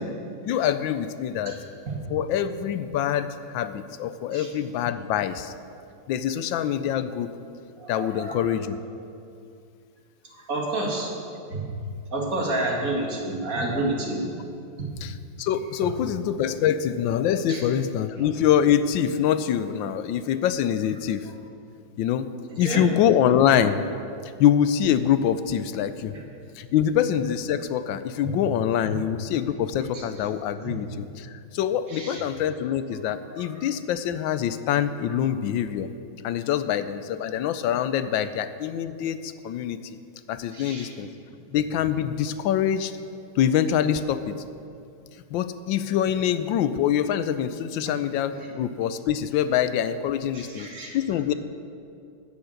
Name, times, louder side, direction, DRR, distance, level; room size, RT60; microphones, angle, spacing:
voice 1, 0.4-1.6 2.1-5.5 6.1-7.3 7.9-8.8 15.0-21.3 22.0-22.3 22.6-23.8 24.4-26.1 26.6-35.9 36.2-39.8 40.3-41.1 41.5-42.9 43.4-44.3 45.3-51.3, left 9 dB, 85° left, 12 dB, 1.3 m, -25 dB
voice 2, 7.8-8.7 10.5-11.1 11.5-11.6 12.1-14.3 17.5-17.6 18.2-18.3 22.6-22.9 30.6-30.7 31.9-32.2 33.4-33.6 40.5-40.9 50.3-50.9, right 2 dB, 45° right, -2 dB, 2.4 m, -29 dB
15.5 x 7.1 x 6.5 m, 2.4 s
omnidirectional pair, 2.1 m